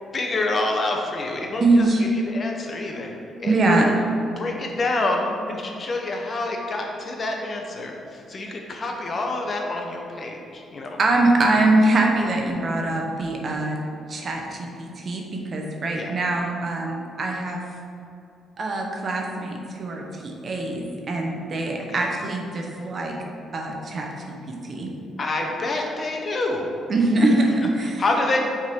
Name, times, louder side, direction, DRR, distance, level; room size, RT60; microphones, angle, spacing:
voice 1, 0.1-1.9 2.3-3.1 3.4-4.0 4.3-11.0 15.9-16.1 21.9-22.1 25.2-26.7 28.0-28.4, left 2 dB, 40° left, 1 dB, 0.8 m, -27 dB
voice 2, 1.6-2.1 3.4-3.9 11.0-13.8 14.1-17.6 18.6-23.2 23.5-24.9 26.9-28.0, right 2 dB, 45° right, 1 dB, 0.9 m, -23 dB
5.9 x 3.7 x 4.5 m, 2.6 s
cardioid pair, 90°, 0 cm